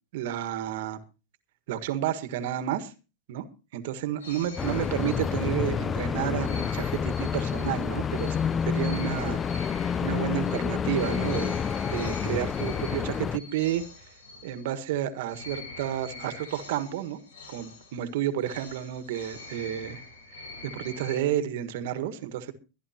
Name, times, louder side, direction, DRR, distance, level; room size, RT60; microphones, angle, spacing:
voice 1, 0.1-1.0 1.7-2.9 3.3-3.4 3.7-8.4 8.6-9.4 10.0-11.6 11.8-13.8 14.4-17.2 17.5-20.0 20.6-22.5, right 11 dB, 65° right, 10 dB, 1.5 m, -31 dB
sound 1, 4.2-5.8 6.4-15.0 15.3-21.2, left 3 dB, 85° left, 5.4 m, -45 dB
sound 2, 4.6-13.4, left 7 dB, 25° left, 0.6 m, -29 dB
22.5 x 11.0 x 2.9 m, 0.31 s
hypercardioid pair, 105°, 0 cm